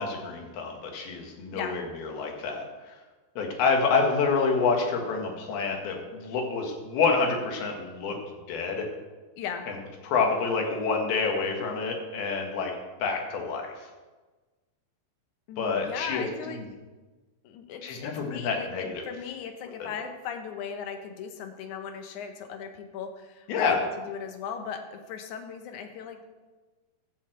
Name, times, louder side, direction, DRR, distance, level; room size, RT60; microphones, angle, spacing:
voice 1, 0.0-3.0 3.4-8.2 8.5-8.8 10.0-12.7 13.0-13.7 15.6-16.6 17.8-19.0 19.8-19.9 23.5-23.8, left 4 dB, 85° left, 2 dB, 3.4 m, -28 dB
voice 2, 9.4-9.7 15.5-16.6 17.4-26.2, left 7 dB, 70° left, 6 dB, 2.0 m, -37 dB
13.0 x 4.5 x 7.7 m, 1.3 s
omnidirectional pair, 4.3 m